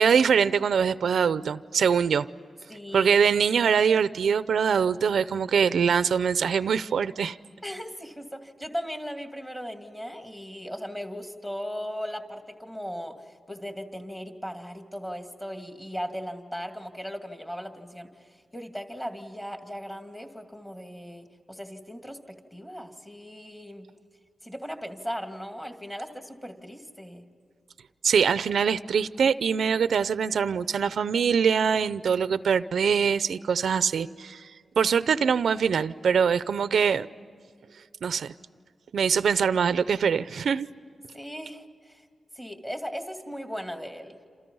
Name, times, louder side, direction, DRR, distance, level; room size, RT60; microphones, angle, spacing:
voice 1, 0.0-2.3 2.9-7.4 28.0-34.5 34.8-37.1 38.0-38.3 38.9-40.7, right 6 dB, 80° right, 15 dB, 0.6 m, -23 dB
voice 2, 2.7-3.2 7.6-23.9 24.4-27.3 41.1-42.0 42.4-44.3, equal, 10° left, 5 dB, 2.3 m, -38 dB
28.5 x 28.0 x 5.5 m, 2.1 s
wide cardioid pair, 135°, 0 cm